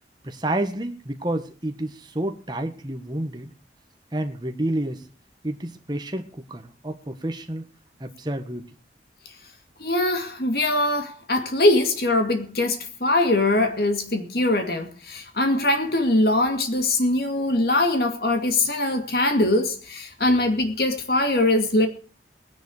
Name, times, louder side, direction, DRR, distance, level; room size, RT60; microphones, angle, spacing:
voice 1, 0.2-3.5 4.1-5.0 5.4-7.7 8.0-8.7, right 1 dB, 25° right, 1.4 m, -29 dB
voice 2, 9.8-21.9, left 2 dB, 60° left, 2.4 m, -22 dB
19.5 x 10.5 x 4.9 m
head